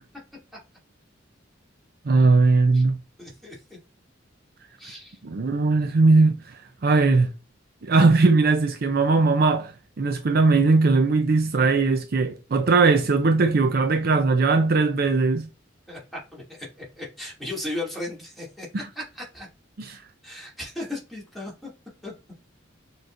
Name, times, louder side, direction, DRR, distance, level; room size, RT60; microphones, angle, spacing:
voice 1, 2.1-3.0 5.2-6.4 6.8-7.3 7.8-15.5 18.7-18.9 19.8-20.0, right 3 dB, 50° right, 0.5 m, -19 dB
voice 2, 3.2-3.6 4.8-5.2 15.9-18.7 19.0-19.5 20.2-21.7 22.0-22.1, left 1 dB, ahead, 2.2 m, -36 dB
6.4 x 3.2 x 2.5 m
head